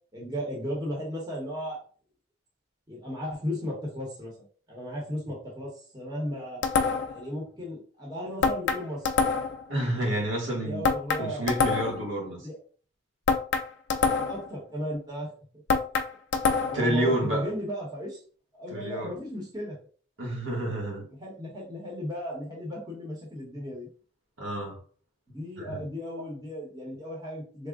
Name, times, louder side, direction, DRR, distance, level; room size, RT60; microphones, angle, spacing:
voice 1, 0.1-1.8 2.9-4.3 4.7-6.6 7.0-9.1 10.6-11.5 12.4-12.6 14.0-15.3 16.7-18.2 18.5-19.8 21.2-23.9 25.3-27.7, equal, 20° right, 1.1 m, -35 dB
sound 1, 6.6-7.2 8.4-9.6 10.8-12.1 13.3-14.5 15.7-16.9, left 5 dB, 60° left, 0.4 m, -26 dB
voice 2, 9.7-10.9 11.2-12.5 16.7-17.5 18.7-19.2 20.2-21.1 24.4-24.8 25.6-25.8, right 1 dB, 70° right, 1.3 m, -29 dB
3.5 x 2.3 x 3.7 m
head